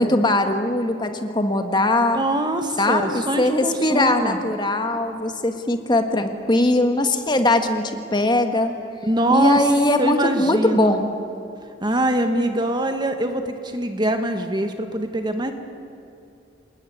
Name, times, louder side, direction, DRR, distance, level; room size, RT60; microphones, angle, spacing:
voice 1, 0.0-2.2 2.8-7.8 8.1-8.7 9.3-11.1, left 1 dB, 25° left, 6 dB, 1.6 m, -20 dB
voice 2, 2.1-4.4 9.0-9.7 10.0-11.0 11.8-15.5, right 1 dB, 25° right, 6 dB, 1.6 m, -23 dB
27.5 x 20.0 x 9.5 m, 2.7 s
head